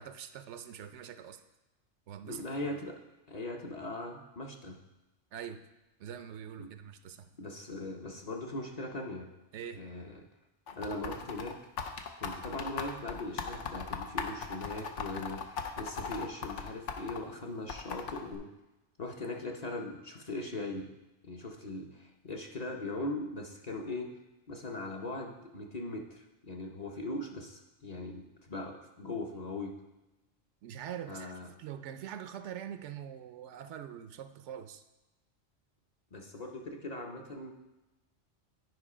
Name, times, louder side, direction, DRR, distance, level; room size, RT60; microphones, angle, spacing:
voice 1, 0.0-1.4 2.1-2.4 5.3-5.7 6.0-7.4 9.5-9.9 30.6-34.8, right 9 dB, 75° right, 10 dB, 0.9 m, -44 dB
voice 2, 2.2-3.0 3.3-4.8 6.6-6.7 7.4-9.3 9.7-10.2 10.7-11.6 12.2-18.5 19.0-20.9 21.2-24.1 24.5-29.7 31.1-31.5 36.1-37.5, left 2 dB, 40° left, 1 dB, 0.8 m, -40 dB
sound 1, 10.7-17.2 17.7-18.4, left 6 dB, 85° left, 1.1 m, -38 dB
9.7 x 5.0 x 4.9 m, 1.0 s
omnidirectional pair, 1.2 m